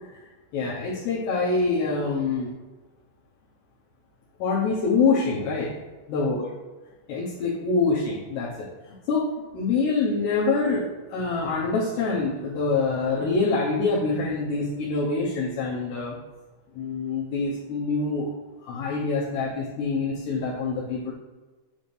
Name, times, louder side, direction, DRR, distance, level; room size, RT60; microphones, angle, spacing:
voice 1, 0.5-2.5 4.4-5.7 6.1-6.4 7.1-8.7 9.1-16.2 16.7-18.3 18.7-21.1, left 4 dB, 70° left, -7 dB, 3.1 m, -25 dB
9.6 x 3.6 x 6.3 m, 1.2 s
omnidirectional pair, 5.5 m